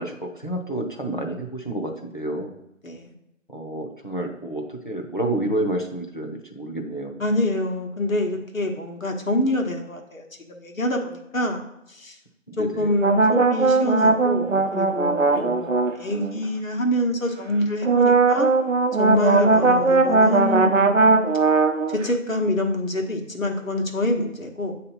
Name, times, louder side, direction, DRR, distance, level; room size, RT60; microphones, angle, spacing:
voice 1, 0.0-2.5 3.5-7.2 12.5-12.9 15.6-15.8 19.7-19.8, right 1 dB, 40° left, 1 dB, 0.7 m, -29 dB
voice 2, 7.2-11.6 11.9-12.2 12.6-18.5 19.0-21.3 21.9-24.8, left 1 dB, 85° left, 3 dB, 1.2 m, -26 dB
sound 1, 13.0-16.4 17.8-22.1, right 3 dB, 70° right, 0.6 m, -19 dB
7.2 x 2.8 x 5.4 m, 0.82 s
figure-of-eight pair, 180°, 39 cm